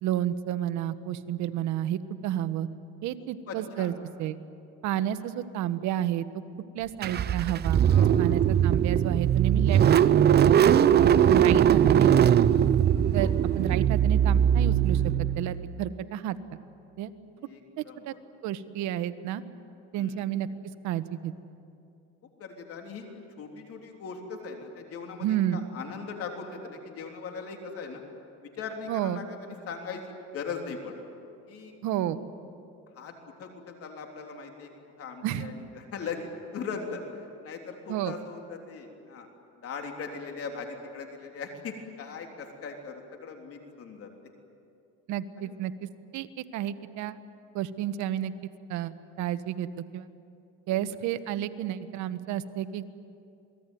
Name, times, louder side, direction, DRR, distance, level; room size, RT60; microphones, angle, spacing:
voice 1, 0.0-2.7 3.0-4.4 4.8-6.3 6.7-7.8 8.2-9.8 10.5-12.5 13.1-16.4 17.0-17.1 17.8-18.1 18.4-19.4 19.9-20.5 20.8-21.3 25.2-25.6 28.9-29.2 31.8-32.2 35.2-35.5 37.9-38.1 45.1-45.7 46.1-47.2 47.5-48.3 48.7-50.1 50.7-52.9, right 11 dB, 65° right, 12 dB, 1.3 m, -31 dB
voice 2, 3.2-3.9 7.8-8.5 11.0-11.3 13.1-13.4 17.4-18.2 19.9-20.3 22.4-28.0 28.4-31.0 31.5-31.8 32.9-33.1 33.4-34.7 35.0-37.0 37.4-39.3 39.6-44.1 45.4-45.6 50.7-50.8, left 5 dB, 50° left, 3 dB, 3.4 m, -40 dB
Car / Engine starting, 7.0-15.8, right 9 dB, 35° right, 0.7 m, -21 dB
28.0 x 20.0 x 9.3 m, 2.6 s
cardioid pair, 120°, 31 cm